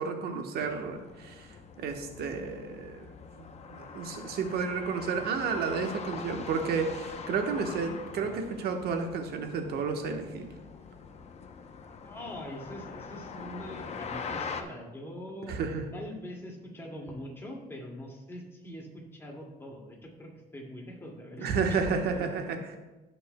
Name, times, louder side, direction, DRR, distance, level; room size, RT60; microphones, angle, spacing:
voice 1, 0.0-3.1 3.4-10.5 15.5-15.8 21.4-22.8, right 5 dB, 70° right, 4 dB, 1.3 m, -32 dB
sound 1, 0.6-14.6, left 5 dB, 40° left, 0.8 m, -43 dB
voice 2, 11.7-15.6 15.9-22.3, equal, 15° left, -1 dB, 2.3 m, -43 dB
16.0 x 6.8 x 2.3 m, 1.1 s
cardioid pair, 110°, 17 cm